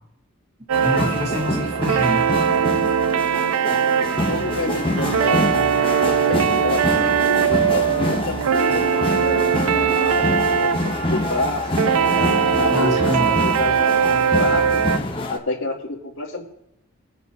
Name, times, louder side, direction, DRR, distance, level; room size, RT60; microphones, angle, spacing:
sound 1, 0.7-15.4, left 1 dB, 25° left, 1.3 m, -26 dB
sound 2, 0.7-15.0, right 7 dB, 85° right, 0.5 m, -21 dB
voice 1, 0.8-2.3 12.7-13.4, left 1 dB, 30° right, -2 dB, 3.9 m, -26 dB
voice 2, 4.3-11.7 12.5-14.8 15.3-16.4, left 2 dB, 65° left, -10 dB, 3.7 m, -29 dB
24.5 x 9.3 x 2.8 m, 0.81 s
head